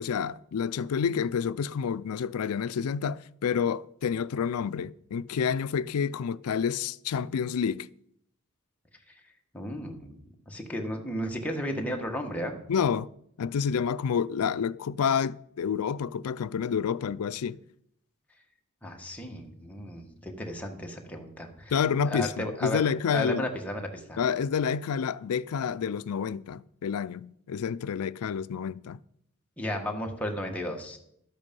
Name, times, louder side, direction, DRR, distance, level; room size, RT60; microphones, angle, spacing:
voice 1, 0.0-7.9 12.7-13.1 13.4-17.6 21.7-23.5 24.2-29.0, left 7 dB, 80° left, 0.4 m, -29 dB
voice 2, 9.5-10.1 10.5-12.6 18.8-21.7 22.1-22.8 23.1-24.2 29.6-31.0, equal, 5° left, 1.5 m, -34 dB
12.0 x 8.2 x 5.3 m
head